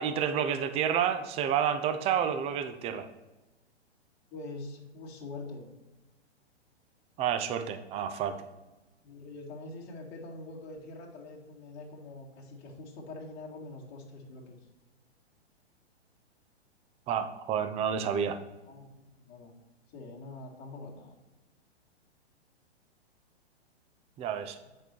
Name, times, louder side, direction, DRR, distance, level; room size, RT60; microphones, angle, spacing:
voice 1, 0.0-3.1 7.2-8.4 17.1-18.4 24.2-24.6, right 8 dB, 20° right, 9 dB, 0.5 m, -29 dB
voice 2, 4.3-5.7 9.0-14.6 18.7-19.0 19.3-19.5 19.9-21.2, left 2 dB, 30° left, -3 dB, 2.2 m, -44 dB
8.1 x 5.4 x 4.5 m, 1.1 s
hypercardioid pair, 120°, 33 cm